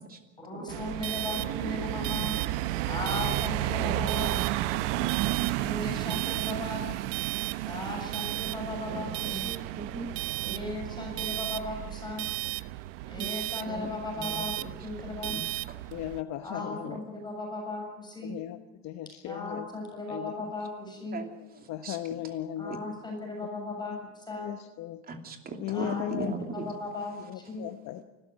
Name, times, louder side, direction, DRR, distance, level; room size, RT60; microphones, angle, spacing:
voice 1, 0.4-2.4 2.9-4.4 5.6-6.9 7.6-9.6 10.4-12.3 13.1-14.5 14.8-15.4 16.4-18.4 19.2-21.2 22.6-24.5 25.7-26.1 26.5-27.6, left 2 dB, 10° left, 1 dB, 7.0 m, -37 dB
sound 1, 0.7-16.2, right 17 dB, 75° right, 0.9 m, -32 dB
voice 2, 3.7-5.4 5.8-6.0 8.9-10.1 13.2-14.7 15.3-15.8 16.8-17.0 21.1-21.3 21.6-22.0 22.7-22.8 25.1-26.7, right 3 dB, 25° right, 4 dB, 2.9 m, -39 dB
voice 3, 15.9-17.0 18.2-18.6 18.8-19.7 20.1-20.4 21.7-22.8 23.6-23.7 24.4-25.0 25.6-26.3 27.3-28.0, left 13 dB, 45° left, 8 dB, 1.0 m, -36 dB
29.0 x 13.5 x 9.0 m, 1.1 s
supercardioid pair, 135°, 37 cm